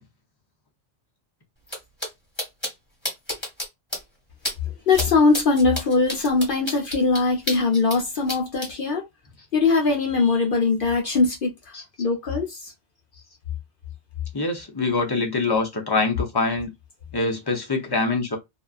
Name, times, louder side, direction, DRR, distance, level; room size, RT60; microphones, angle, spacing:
sound 1, 1.7-1.8 2.0-2.1 2.4-2.7 3.1-3.7 3.9-4.0 4.5-4.6 4.9-5.1 5.3-8.0 8.3-8.7, left 1 dB, 10° left, 1.5 m, -29 dB
voice 1, 4.9-9.0 9.5-12.7, left 4 dB, 55° left, 0.8 m, -21 dB
voice 2, 14.3-16.7 17.1-18.4, left 3 dB, 25° left, 0.6 m, -24 dB
2.7 x 2.3 x 2.4 m
omnidirectional pair, 1.1 m